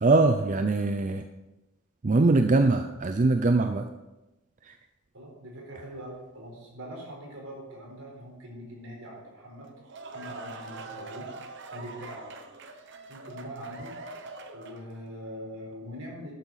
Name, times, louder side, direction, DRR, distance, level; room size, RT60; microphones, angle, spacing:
voice 1, 0.0-1.2 2.0-3.8 4.7-4.8, right 3 dB, 35° right, 7 dB, 0.5 m, -22 dB
voice 2, 5.1-9.7 10.1-11.3 11.7-12.4 13.1-13.9 14.5-16.3, equal, 75° right, -2 dB, 4.4 m, -42 dB
sound 1, 9.6-15.0, right 3 dB, 55° right, 0.9 m, -43 dB
12.0 x 9.0 x 4.1 m, 1.0 s
head